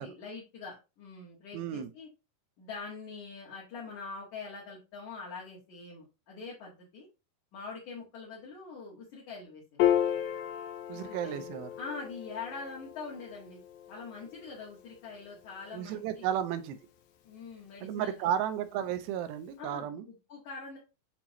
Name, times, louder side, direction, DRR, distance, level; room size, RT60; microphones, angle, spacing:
voice 1, 0.0-2.1 2.6-7.1 7.5-10.0 10.9-11.5 11.8-13.6 13.9-16.3 17.2-18.3 19.6-20.8, left 4 dB, 55° left, 2.7 m, -44 dB
voice 2, 1.5-1.9 10.9-11.7 15.7-16.8 17.8-20.0, right 10 dB, 90° right, 2.8 m, -33 dB
Piano, 9.8-16.4, left 11 dB, 75° left, 2.5 m, -34 dB
8.7 x 3.6 x 3.0 m
omnidirectional pair, 4.7 m